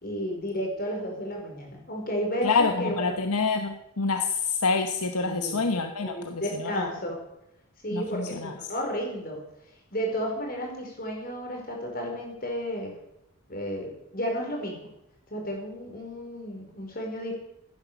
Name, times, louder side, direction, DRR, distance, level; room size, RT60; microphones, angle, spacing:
voice 1, 0.0-3.2 5.2-5.7 6.0-7.2 7.8-9.4 9.9-12.9 13.5-14.8 15.3-17.3, equal, 40° left, 1 dB, 5.0 m, -32 dB
voice 2, 2.4-6.9 7.9-8.5, left 4 dB, 85° left, 6 dB, 1.1 m, -27 dB
15.0 x 10.5 x 6.9 m, 0.81 s
head